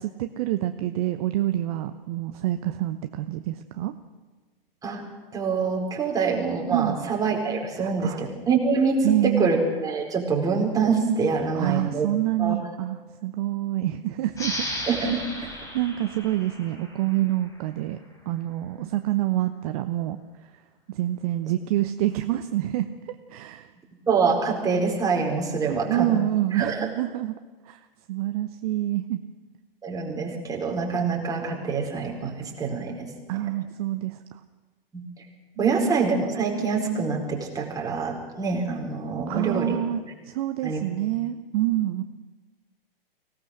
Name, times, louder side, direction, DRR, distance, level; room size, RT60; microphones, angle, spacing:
voice 1, 0.0-3.9 6.7-7.0 7.8-8.3 9.0-9.6 11.5-14.7 15.7-18.0 18.3-20.5 20.9-23.7 25.6-27.3 27.6-29.2 33.3-34.4 35.6-35.7 39.3-42.0, right 14 dB, 40° right, 9 dB, 0.9 m, -27 dB
voice 2, 5.3-12.1 12.4-12.6 14.9-15.2 24.1-26.2 26.5-26.9 29.8-33.1 34.9-35.1 35.6-39.8 40.6-40.8, right 5 dB, 10° right, -1 dB, 4.4 m, -25 dB
sound 1, 14.3-17.6, left 1 dB, 10° left, 4.1 m, -35 dB
24.5 x 18.0 x 6.5 m, 1.3 s
figure-of-eight pair, 110°, 29 cm